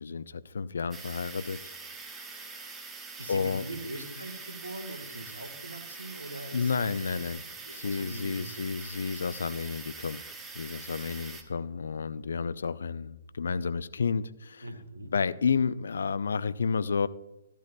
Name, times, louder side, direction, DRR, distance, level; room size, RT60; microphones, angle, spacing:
voice 1, 0.0-1.6 2.2-2.7 3.3-3.6 6.5-7.4 7.7-10.2 10.5-14.6 15.1-17.1, left 5 dB, 65° left, 0.4 m, -31 dB
sound 1, 0.9-11.4, right 4 dB, 10° right, 1.1 m, -44 dB
voice 2, 3.2-6.9 7.1-7.2 7.6-8.6 14.6-15.1, right 1 dB, 80° right, 1.6 m, -41 dB
13.5 x 12.0 x 2.3 m
figure-of-eight pair, 125°, 0 cm